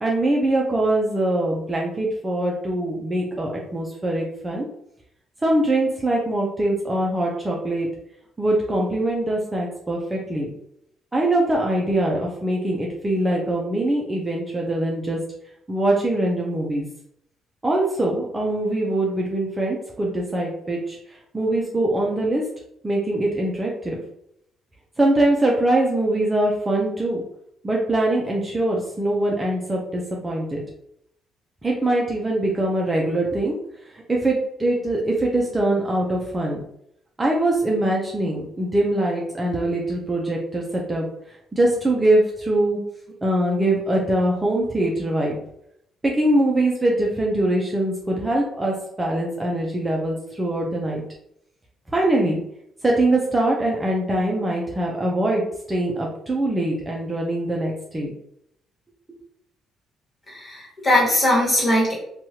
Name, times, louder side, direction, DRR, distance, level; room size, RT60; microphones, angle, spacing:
voice 1, 0.0-4.7 5.4-7.9 8.4-10.5 11.1-15.2 15.7-16.9 17.6-21.0 21.3-22.4 22.8-24.0 25.0-27.2 27.6-30.6 31.6-33.6 34.1-36.6 37.2-41.1 41.5-42.8 43.2-45.4 46.0-51.0 51.9-52.4 52.8-58.1, right 1 dB, 20° right, -2 dB, 0.5 m, -22 dB
voice 2, 60.3-61.9, left 1 dB, 25° left, -5 dB, 1.5 m, -20 dB
2.9 x 2.3 x 2.9 m, 0.74 s
cardioid pair, 95°, 0 cm